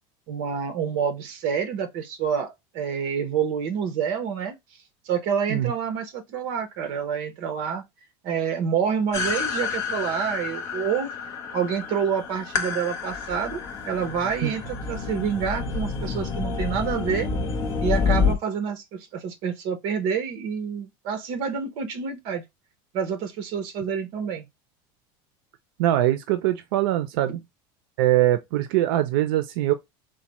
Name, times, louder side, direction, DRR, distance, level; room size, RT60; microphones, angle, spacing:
voice 1, 0.3-4.5 5.0-7.8 8.2-11.1 11.5-13.6 13.8-17.3 17.8-22.4 22.9-24.5 27.3-27.4, right 7 dB, 50° right, 0.8 m, -28 dB
sound 1, 9.1-18.3, left 5 dB, 25° left, 0.5 m, -28 dB
sound 2, 13.3-13.4 13.6-18.3, right 1 dB, 25° right, 1.2 m, -42 dB
voice 2, 25.8-27.4 28.0-29.7, right 14 dB, 85° right, 0.4 m, -22 dB
4.0 x 2.1 x 2.9 m
cardioid pair, 175°, 11 cm